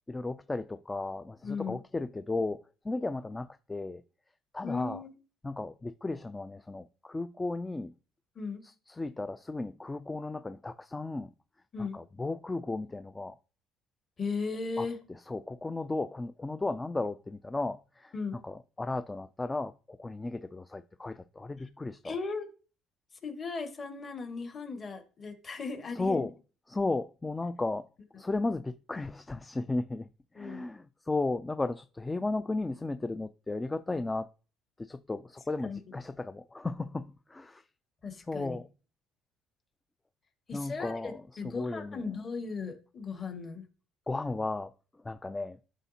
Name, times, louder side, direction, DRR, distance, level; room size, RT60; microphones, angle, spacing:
voice 1, 0.1-4.0 4.5-5.0 5.4-7.9 8.6-11.3 11.8-13.4 14.8-14.9 15.3-18.1 18.4-22.2 26.0-26.3 26.7-27.9 28.2-30.1 30.3-34.3 34.8-37.6 38.3-38.7 40.5-42.0 44.1-44.7 45.0-45.6, left 2 dB, 15° left, 0.4 m, -35 dB
voice 2, 1.4-1.8 4.6-5.2 8.4-8.6 11.7-12.0 14.2-15.0 18.1-18.4 22.0-22.5 23.2-26.3 30.4-30.6 35.6-35.8 38.0-38.6 40.5-43.6, left 4 dB, 35° left, 1.8 m, -37 dB
11.0 x 4.1 x 2.8 m
cardioid pair, 105°, 0 cm